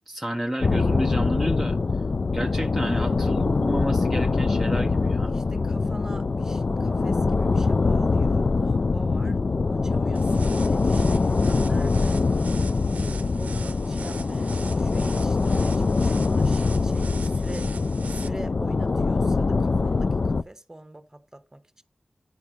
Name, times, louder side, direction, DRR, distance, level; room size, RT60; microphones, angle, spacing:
voice 1, 0.1-1.8 2.3-5.3, right 1 dB, ahead, 0.7 m, -30 dB
sound 1, 0.6-20.4, left 4 dB, 50° left, 0.4 m, -23 dB
voice 2, 2.8-3.3 5.3-9.4 9.7-12.3 13.1-17.7 18.1-21.8, right 1 dB, 20° right, 1.0 m, -44 dB
sound 2, 10.2-18.3, right 4 dB, 80° right, 0.6 m, -43 dB
9.8 x 4.5 x 5.0 m
wide cardioid pair, 65°, 3 cm